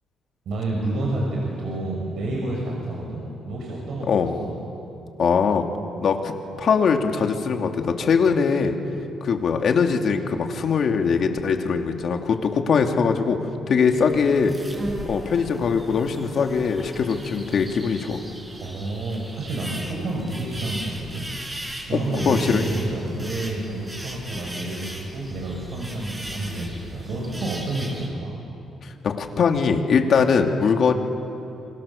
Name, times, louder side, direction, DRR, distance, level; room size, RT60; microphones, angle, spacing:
voice 1, 0.5-4.5 18.6-28.3, right 2 dB, 70° right, -2 dB, 5.7 m, -29 dB
voice 2, 4.1-4.4 5.2-5.7 6.0-8.7 9.2-13.4 13.7-14.5 15.0-18.2 21.9-22.0 22.2-22.6 28.8-30.9, left 5 dB, 55° left, 4 dB, 2.5 m, -21 dB
sound 1, 13.9-28.1, equal, 20° right, 6.3 m, -37 dB
29.5 x 25.0 x 7.1 m, 2.8 s
cardioid pair, 100°, 0 cm